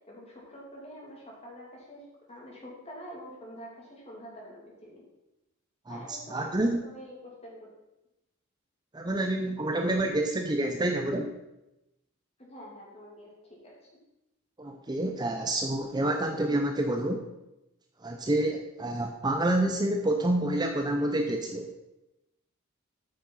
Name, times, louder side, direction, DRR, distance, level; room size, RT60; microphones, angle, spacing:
voice 1, 0.1-2.0 2.3-5.0 5.9-7.1 7.4-7.7 12.4-13.7, equal, 30° left, -3 dB, 2.8 m, -46 dB
voice 2, 5.9-6.8 8.9-11.3 14.6-17.2 18.0-21.7, right 1 dB, 20° right, 3 dB, 0.6 m, -28 dB
8.7 x 6.2 x 5.6 m, 0.93 s
head